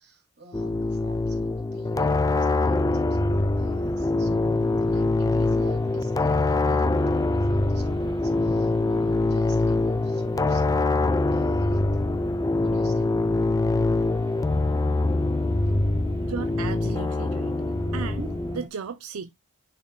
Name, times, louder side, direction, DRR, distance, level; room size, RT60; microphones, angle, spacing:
voice 1, 0.0-12.1 12.6-13.2, right 2 dB, 55° right, 2.4 m, -49 dB
sound 1, 0.5-18.6, left 2 dB, 15° left, 0.3 m, -24 dB
sound 2, 2.3-18.7, equal, 20° right, 1.1 m, -40 dB
voice 2, 16.2-17.5 17.9-19.3, right 5 dB, 85° right, 0.5 m, -35 dB
10.5 x 4.3 x 2.2 m
head